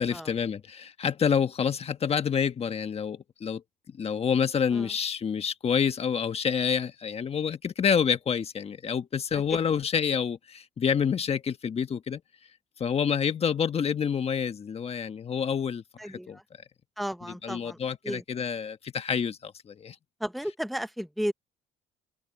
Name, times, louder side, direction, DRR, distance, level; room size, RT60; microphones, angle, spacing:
voice 1, 0.0-3.6 3.9-12.2 12.8-16.4 17.3-20.0, left 7 dB, 35° left, 1.4 m, -28 dB
voice 2, 16.0-16.4 17.0-17.8 18.0-18.2 20.2-21.3, equal, ahead, 1.0 m, -33 dB
cardioid pair, 110°, 17 cm